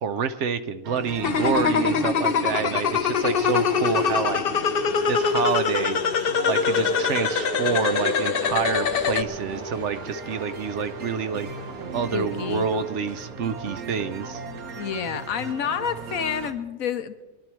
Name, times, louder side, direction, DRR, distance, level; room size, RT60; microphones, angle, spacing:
voice 1, 0.0-4.4 5.1-6.0 6.5-11.5 11.9-14.4, right 6 dB, 60° right, 11 dB, 0.9 m, -28 dB
sound 1, 0.8-16.5, right 5 dB, 90° right, 1.6 m, -37 dB
sound 2, 1.2-9.2, left 6 dB, 55° left, 0.7 m, -23 dB
sound 3, 6.7-14.3, right 2 dB, 40° right, 1.1 m, -38 dB
voice 2, 12.1-12.7 14.7-17.2, left 7 dB, 75° left, 10 dB, 1.3 m, -29 dB
22.5 x 11.5 x 4.5 m, 1.2 s
omnidirectional pair, 1.5 m